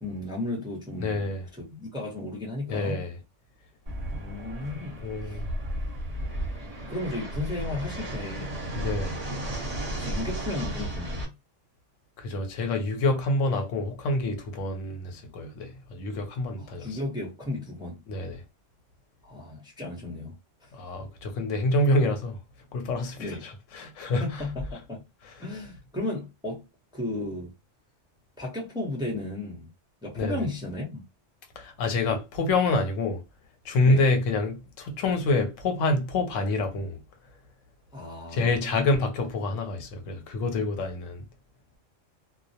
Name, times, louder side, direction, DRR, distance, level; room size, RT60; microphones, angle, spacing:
voice 1, 0.0-3.0 4.1-5.0 5.2-5.4 6.9-8.5 10.0-11.3 16.6-18.0 19.2-20.4 23.2-23.4 24.2-25.0 25.4-26.6 26.9-27.5 28.4-29.7 30.0-31.0 33.8-34.0 37.9-38.9, left 2 dB, 5° right, 0.6 m, -34 dB
voice 2, 1.0-1.5 2.7-3.2 5.0-5.5 8.7-9.2 12.2-16.9 18.1-18.4 20.7-22.4 22.7-24.5 25.2-25.3 30.2-30.4 31.6-33.2 33.6-37.0 38.3-41.2, left 2 dB, 80° left, 1.0 m, -27 dB
Fixed-wing aircraft airplane, 3.9-11.2, right 1 dB, 35° right, 0.9 m, -34 dB
2.3 x 2.0 x 2.7 m
omnidirectional pair, 1.3 m